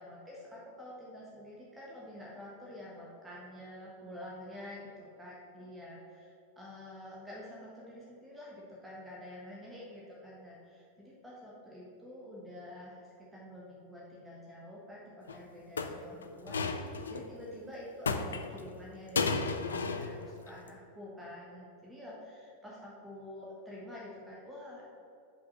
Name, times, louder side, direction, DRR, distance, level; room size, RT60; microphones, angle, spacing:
voice 1, 0.0-24.8, left 1 dB, 10° right, -5 dB, 1.4 m, -48 dB
sound 1, 15.3-15.4 15.8-17.3 18.1-18.7 19.2-20.2 20.5-20.7, left 4 dB, 70° left, 0.5 m, -33 dB
5.7 x 5.2 x 6.3 m, 2.5 s
figure-of-eight pair, 90°, 0 cm